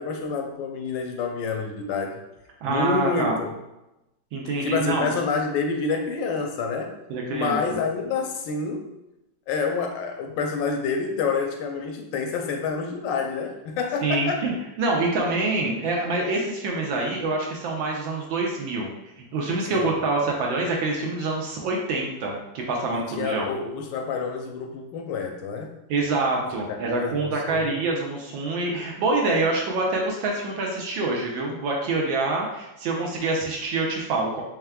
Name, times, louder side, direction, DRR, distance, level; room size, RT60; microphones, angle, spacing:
voice 1, 0.0-2.2 2.6-3.5 4.6-6.9 7.3-8.9 9.5-14.5 19.7-19.9 22.9-25.7 26.5-27.8, left 4 dB, 75° left, 3 dB, 1.2 m, -28 dB
voice 2, 2.6-3.4 4.3-5.1 7.1-7.8 14.0-14.5 14.8-18.9 19.2-23.5 25.9-34.4, right 3 dB, 75° right, -1 dB, 1.4 m, -26 dB
4.5 x 3.5 x 2.2 m, 0.94 s
omnidirectional pair, 2.2 m